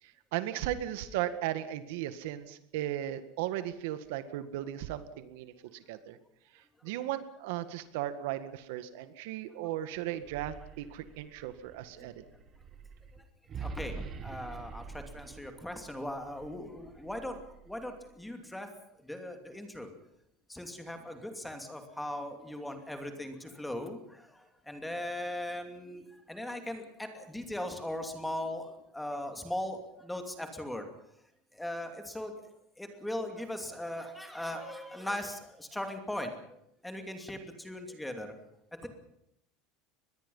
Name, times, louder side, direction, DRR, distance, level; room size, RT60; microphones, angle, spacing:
voice 1, 0.0-6.2 6.5-12.2, right 12 dB, 70° right, 11 dB, 1.8 m, -36 dB
sound 1, 10.1-18.2, right 5 dB, 25° right, 1.9 m, -46 dB
voice 2, 13.5-17.4 17.6-18.7 19.0-19.9 20.5-30.8 31.5-32.3 32.8-36.6 36.8-38.3 38.8-38.9, left 1 dB, 5° left, 5 dB, 2.7 m, -39 dB
24.0 x 21.0 x 5.6 m, 0.76 s
cardioid pair, 170°, 0 cm